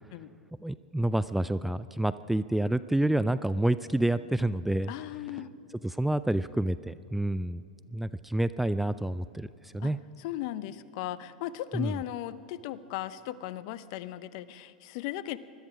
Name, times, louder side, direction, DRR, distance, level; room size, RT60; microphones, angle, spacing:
voice 1, 0.6-4.9 5.8-7.6 7.9-9.5 9.7-10.0 11.7-11.9, right 1 dB, 5° right, 14 dB, 0.4 m, -28 dB
voice 2, 4.9-5.5 9.8-9.9 10.2-15.4, left 13 dB, 55° left, 15 dB, 0.7 m, -37 dB
21.0 x 13.0 x 5.0 m, 2.7 s
hypercardioid pair, 100°, 4 cm